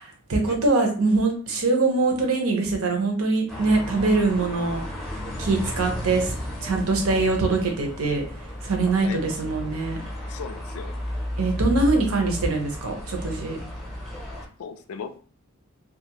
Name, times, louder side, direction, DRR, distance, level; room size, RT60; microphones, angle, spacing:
voice 1, 0.0-4.8 5.4-6.3 6.6-8.2 8.6-10.0 11.4-13.6, right 3 dB, 80° right, 3 dB, 0.8 m, -23 dB
sound 1, 3.5-14.5, left 1 dB, ahead, 0.6 m, -33 dB
voice 2, 10.3-11.0 14.6-15.2, left 6 dB, 85° left, 10 dB, 0.4 m, -38 dB
2.5 x 2.4 x 2.9 m, 0.41 s
head